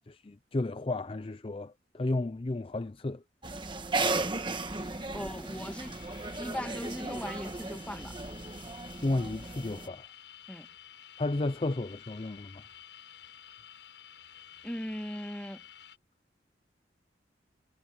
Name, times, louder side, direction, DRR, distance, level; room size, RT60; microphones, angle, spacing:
voice 1, 0.0-3.2 9.0-10.1 11.2-12.6, left 2 dB, 30° left, 0.5 m, -33 dB
sound 1, 3.4-9.9, right 3 dB, 25° right, 1.3 m, -35 dB
sound 2, 4.4-16.0, left 10 dB, 85° left, 7.7 m, -52 dB
voice 2, 5.1-6.0 6.4-8.1 10.5-10.7 14.6-15.6, equal, 5° left, 1.5 m, -38 dB
head